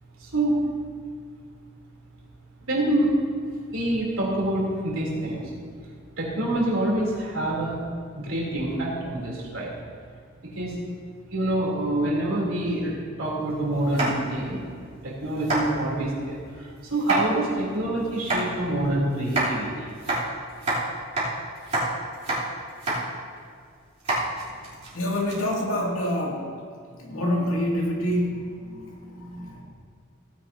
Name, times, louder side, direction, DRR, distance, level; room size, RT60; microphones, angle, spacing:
voice 1, 0.2-0.6 2.7-3.1 3.7-5.5 6.2-7.8 8.1-9.7 10.5-10.7 11.3-12.9 13.2-14.6 15.0-19.9, right 1 dB, 70° right, -4 dB, 3.3 m, -26 dB
sound 1, 13.9-14.5 14.9-15.0 15.4-15.6 16.9-17.2 18.1-18.4 19.2-19.5 20.0-20.8 21.2-21.3 21.6-21.9 22.1-22.4 22.7-23.0 23.4-23.5 24.0-25.4, right 2 dB, 35° right, 3.2 m, -27 dB
voice 2, 24.9-26.5 26.9-29.6, left 1 dB, 80° left, -3 dB, 2.5 m, -27 dB
17.0 x 10.0 x 2.8 m, 2.1 s
head